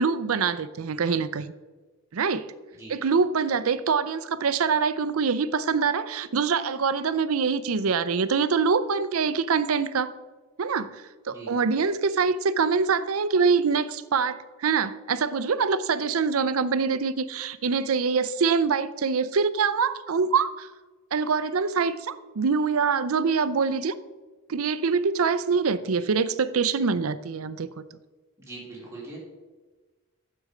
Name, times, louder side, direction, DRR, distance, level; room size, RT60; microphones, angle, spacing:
voice 1, 0.0-1.5 2.1-2.5 2.9-10.1 10.6-11.0 11.3-20.7 21.1-23.9 24.5-27.8, right 5 dB, 85° right, 15 dB, 0.6 m, -24 dB
voice 2, 28.4-29.2, right 2 dB, 15° right, -5 dB, 3.4 m, -41 dB
9.6 x 7.7 x 5.0 m, 1.3 s
head